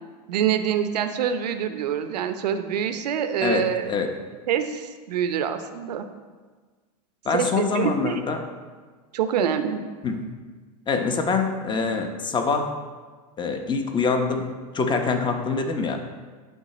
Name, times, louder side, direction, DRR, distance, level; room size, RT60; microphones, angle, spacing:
voice 1, 0.3-3.9 4.5-6.1 7.3-8.2 9.1-9.8, right 8 dB, 90° right, 9 dB, 0.8 m, -25 dB
voice 2, 3.4-4.2 7.2-8.4 10.0-10.3 10.9-12.7 13.4-16.0, left 4 dB, 25° left, 6 dB, 0.9 m, -25 dB
11.0 x 4.8 x 4.2 m, 1.4 s
supercardioid pair, 120°, 20 cm